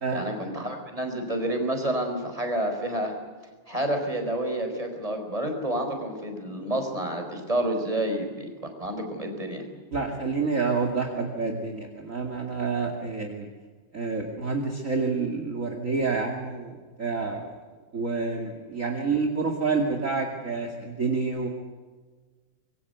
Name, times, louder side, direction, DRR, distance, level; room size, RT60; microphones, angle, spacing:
voice 1, 0.1-3.1 3.7-8.5 8.8-9.6, right 1 dB, 15° right, 4 dB, 5.0 m, -29 dB
voice 2, 9.9-13.5 13.9-17.5 17.9-21.5, right 4 dB, 35° right, 1 dB, 2.7 m, -28 dB
26.0 x 23.0 x 8.2 m, 1.4 s
omnidirectional pair, 2.4 m